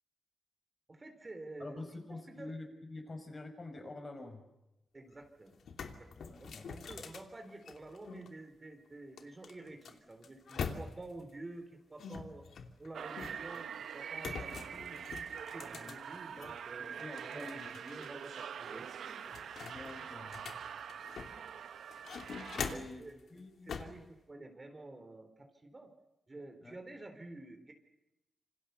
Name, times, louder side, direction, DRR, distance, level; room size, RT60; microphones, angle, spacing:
voice 1, 0.9-2.5 4.9-11.6 11.9-12.4 12.8-15.0 15.5-19.8 22.6-23.2 23.6-25.9 26.3-27.7, right 2 dB, 25° right, 6 dB, 3.8 m, -50 dB
voice 2, 1.6-4.4 6.2-6.7 15.6-16.0 16.9-17.7 19.7-20.4 22.5-23.0 23.3-23.7 26.6-26.8, left 2 dB, 35° left, 5 dB, 6.0 m, -47 dB
sound 1, 5.1-5.2 5.5-8.3 9.2-11.2 12.0-13.6 14.2-16.6 17.0-18.1 18.4-18.5 18.9-21.5 21.9-23.0 23.7-24.0, left 6 dB, 70° left, 2.7 m, -44 dB
sound 2, 12.9-22.8, right 8 dB, 80° right, 1.1 m, -44 dB
27.0 x 27.0 x 6.9 m, 0.95 s
cardioid pair, 100°, 0 cm